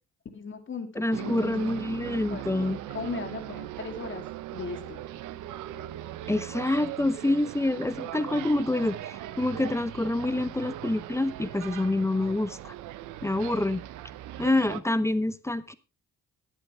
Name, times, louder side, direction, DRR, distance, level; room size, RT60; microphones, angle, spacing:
voice 1, 0.3-1.6 2.3-4.2 4.5-5.0, left 4 dB, 40° left, 6 dB, 2.6 m, -38 dB
voice 2, 1.0-2.8 6.3-12.7 13.2-13.8 14.4-15.7, left 2 dB, 10° left, 14 dB, 0.8 m, -27 dB
sound 1, 1.1-14.8, right 13 dB, 85° right, 0.9 m, -39 dB
19.5 x 8.3 x 3.3 m, 0.30 s
cardioid pair, 90°, 30 cm